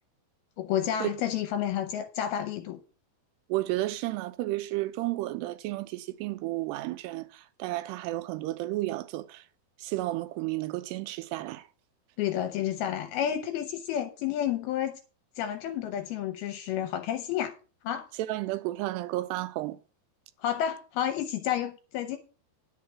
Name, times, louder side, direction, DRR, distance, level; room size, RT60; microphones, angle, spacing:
voice 1, 0.6-2.8 12.2-15.0 15.4-17.5 17.8-18.1 20.4-22.2, left 10 dB, 75° left, 2.4 m, -30 dB
voice 2, 3.5-9.4 9.8-11.6 18.2-19.8, right 17 dB, 80° right, 2.8 m, -32 dB
10.5 x 4.6 x 7.3 m
omnidirectional pair, 4.8 m